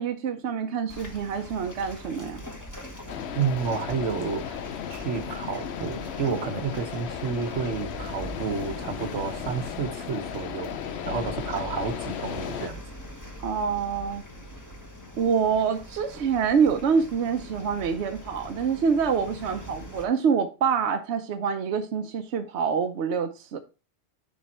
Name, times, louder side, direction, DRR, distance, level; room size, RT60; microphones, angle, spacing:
voice 1, 0.0-2.4 13.4-14.2 15.2-23.6, right 6 dB, 75° right, 1.0 m, -26 dB
sound 1, 0.9-20.0, equal, 15° left, 1.3 m, -42 dB
sound 2, 3.1-12.7, left 9 dB, 70° left, 0.8 m, -36 dB
voice 2, 3.3-4.6 4.9-10.7 11.0-12.8, right 5 dB, 90° right, 1.3 m, -30 dB
10.5 x 3.6 x 4.3 m
omnidirectional pair, 1.2 m